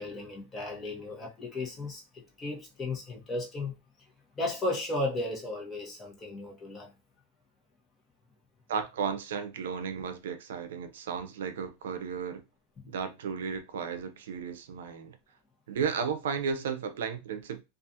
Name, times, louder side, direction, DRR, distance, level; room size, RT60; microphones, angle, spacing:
voice 1, 0.0-3.8 4.4-6.9 12.8-12.9, left 2 dB, 20° left, 0.9 m, -35 dB
voice 2, 8.7-12.4 12.9-15.2 15.7-17.6, right 6 dB, 90° right, 0.5 m, -34 dB
2.4 x 2.3 x 2.7 m
supercardioid pair, 140°, 0 cm